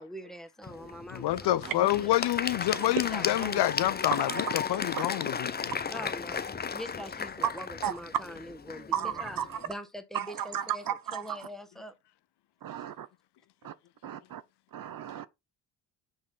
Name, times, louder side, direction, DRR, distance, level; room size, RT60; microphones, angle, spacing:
voice 1, 0.0-2.1 3.0-3.7 5.9-6.4 6.7-9.4 9.6-10.8 11.1-11.9, equal, ahead, 1.4 m, -43 dB
Applause / Crowd, 0.6-9.7, left 6 dB, 20° left, 0.6 m, -35 dB
voice 2, 1.1-5.7, left 14 dB, 65° left, 0.5 m, -28 dB
voice 3, 4.1-4.5 4.9-5.0 7.4-7.5 7.8-8.0 8.9-9.7 10.1-11.5 12.6-13.1 13.6-13.7 14.0-14.4 14.7-15.3, right 9 dB, 50° right, 0.6 m, -34 dB
6.5 x 3.1 x 5.4 m
supercardioid pair, 65°, 45 cm